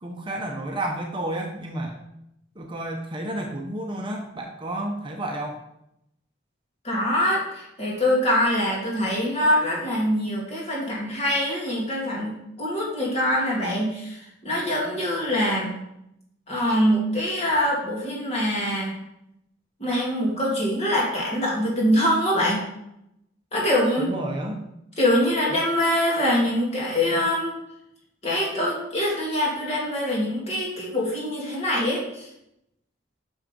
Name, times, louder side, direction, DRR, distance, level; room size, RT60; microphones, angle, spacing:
voice 1, 0.0-1.9 2.6-5.5 24.0-24.6, right 1 dB, 25° right, 1 dB, 0.8 m, -31 dB
voice 2, 6.8-15.8 16.5-19.0 19.8-22.6 23.5-24.1 25.0-27.5 28.2-32.3, left 1 dB, 30° left, -4 dB, 2.5 m, -24 dB
6.3 x 6.3 x 5.3 m, 0.82 s
head